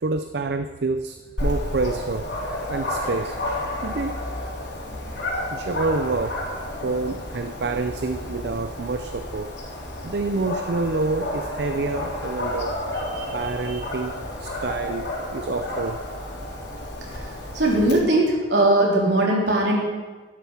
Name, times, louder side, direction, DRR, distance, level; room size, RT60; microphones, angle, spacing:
voice 1, 0.0-2.4 2.7-3.4 3.8-4.6 5.1-9.5 10.0-16.0, right 3 dB, 65° right, 8 dB, 0.5 m, -28 dB
Dog, 1.4-17.9, left 1 dB, 80° left, 3.7 m, -31 dB
voice 2, 17.5-19.8, right 1 dB, 80° right, -3 dB, 3.8 m, -19 dB
12.0 x 12.0 x 5.8 m, 1.3 s
head